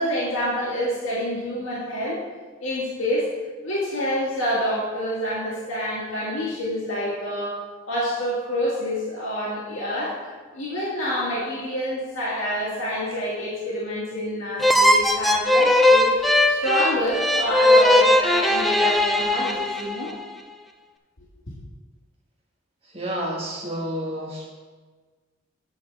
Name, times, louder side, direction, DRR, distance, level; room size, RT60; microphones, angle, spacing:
voice 1, 0.0-2.2 2.6-3.3 3.6-7.6 7.9-16.1 16.5-20.1, equal, 85° left, -8 dB, 1.9 m, -27 dB
sound 1, 14.6-20.1, left 1 dB, ahead, 0.3 m, -19 dB
voice 2, 22.8-24.5, equal, 30° right, -2 dB, 1.4 m, -30 dB
8.1 x 4.7 x 6.5 m, 1.4 s
head